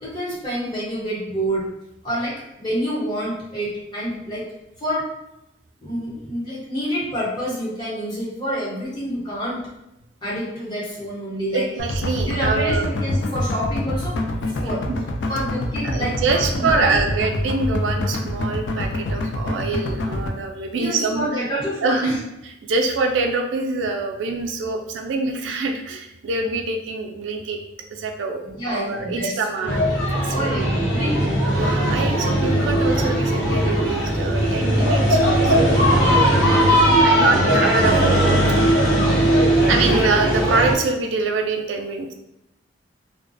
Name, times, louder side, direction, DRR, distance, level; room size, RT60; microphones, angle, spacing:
voice 1, 0.0-1.7 2.0-4.4 4.8-5.1 5.8-9.6 10.2-11.6 12.2-14.2 14.6-14.8 15.3-16.9 20.8-22.2 28.4-29.7 30.3-31.4, equal, 25° left, -7 dB, 0.8 m, -27 dB
voice 2, 11.5-12.9 14.9-15.0 15.8-21.3 21.8-22.2 22.6-27.6 27.9-29.8 30.2-30.7 31.5-38.6 39.6-42.1, right 3 dB, 85° right, 4 dB, 0.3 m, -25 dB
sound 1, 11.8-20.3, left 1 dB, 75° left, 0.3 m, -25 dB
sound 2, 29.7-40.8, right 1 dB, 90° left, 1.1 m, -18 dB
2.3 x 2.1 x 2.5 m, 0.88 s
head